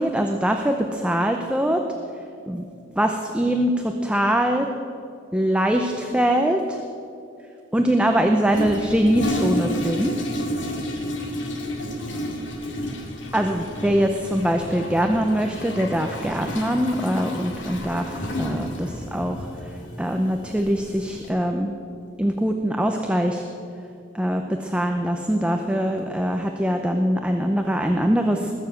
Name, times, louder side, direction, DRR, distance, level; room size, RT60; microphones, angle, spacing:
voice 1, 0.0-1.8 2.5-2.6 3.0-4.7 5.3-6.8 7.7-10.1 13.3-21.8 22.2-23.4 24.1-28.5, equal, 5° right, 4 dB, 0.7 m, -23 dB
Toilet flush, 8.5-21.3, left 1 dB, 70° left, 2.2 m, -31 dB
20.0 x 7.2 x 7.7 m, 2.5 s
head